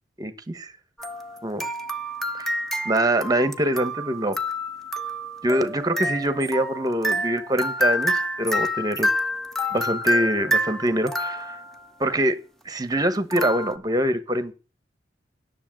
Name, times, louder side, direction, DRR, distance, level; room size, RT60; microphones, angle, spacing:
voice 1, 0.2-0.7 1.4-1.7 2.4-2.6 2.8-4.4 5.4-9.1 9.7-11.6 12.0-12.4 12.6-14.5, right 1 dB, 20° right, 1.1 m, -24 dB
sound 1, 1.0-11.9 13.3-13.8, equal, ahead, 0.8 m, -28 dB
10.0 x 6.8 x 7.7 m
head